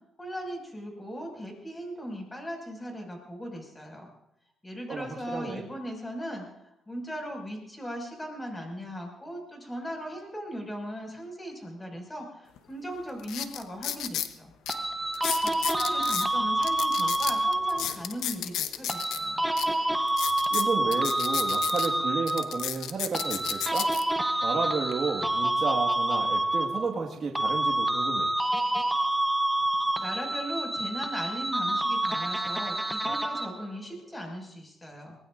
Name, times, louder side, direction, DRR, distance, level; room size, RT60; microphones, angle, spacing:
voice 1, 0.2-4.1 4.6-6.5 6.9-14.5 15.3-19.4 30.0-35.2, equal, 15° left, 2 dB, 6.0 m, -38 dB
voice 2, 4.9-5.6 20.5-23.9 24.4-28.3, right 5 dB, 50° right, -2 dB, 1.8 m, -32 dB
sound 1, 12.6-12.7 13.2-14.3 14.7-14.8 15.1-16.3 16.6-19.2 19.6-19.7 20.1-21.9 22.3-24.0 24.7-24.9, left 10 dB, 85° left, 0.9 m, -33 dB
sound 2, 14.7-18.0 18.9-22.7 23.1-27.1 27.3-33.7, right 1 dB, 5° right, 1.0 m, -28 dB
24.0 x 19.5 x 2.6 m, 0.83 s
cardioid pair, 90°, 0 cm